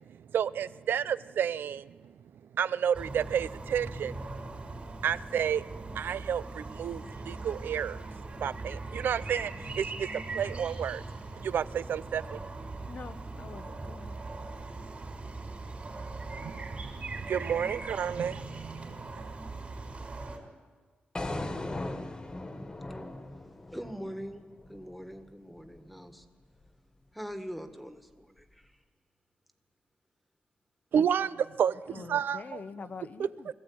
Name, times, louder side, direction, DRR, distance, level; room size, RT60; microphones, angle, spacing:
voice 1, 0.0-2.1 2.5-4.2 5.0-5.6 5.9-8.0 8.4-10.1 10.3-11.0 11.4-12.4 16.3-19.1 30.9-32.6, right 8 dB, 75° right, 17 dB, 0.6 m, -31 dB
sound 1, 2.9-20.4, right 3 dB, 40° right, 4.3 m, -40 dB
voice 2, 12.8-14.2 31.9-33.5, left 5 dB, 50° left, 11 dB, 0.8 m, -45 dB
sound 2, 21.2-25.3, left 2 dB, 25° left, 1.6 m, -38 dB
voice 3, 23.7-26.3 27.1-28.8, equal, ahead, 8 dB, 1.7 m, -42 dB
22.0 x 14.5 x 8.8 m, 1.4 s
cardioid pair, 100°, 3 cm